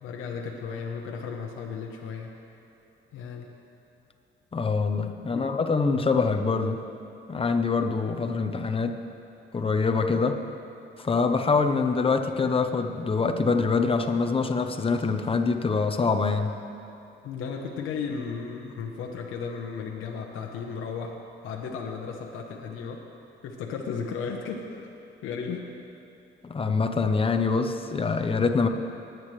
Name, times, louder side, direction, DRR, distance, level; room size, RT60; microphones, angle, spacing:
voice 1, 0.0-2.4 3.1-3.5 5.3-5.4 17.2-23.0 23.4-24.9 25.2-25.7, left 5 dB, 90° left, 1 dB, 1.1 m, -35 dB
voice 2, 4.5-6.8 7.3-9.0 9.5-10.4 11.0-16.6 26.4-28.7, left 4 dB, 30° left, 5 dB, 0.9 m, -25 dB
20.0 x 9.3 x 3.3 m, 2.9 s
cardioid pair, 90°, 20 cm